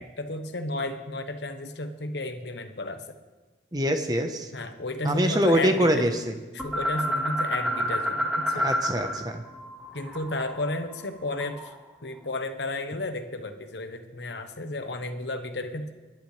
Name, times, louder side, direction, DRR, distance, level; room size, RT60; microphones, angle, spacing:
voice 1, 0.0-3.0 4.5-6.1 6.5-8.7 9.9-11.7 12.0-15.9, left 2 dB, 85° left, 7 dB, 1.1 m, -33 dB
voice 2, 3.7-4.5 5.0-6.3 8.5-9.4, equal, 20° right, 6 dB, 1.0 m, -24 dB
sound 1, 6.6-9.2 9.5-11.8, equal, 5° right, 1.7 m, -29 dB
28.0 x 11.0 x 3.3 m, 1.3 s
head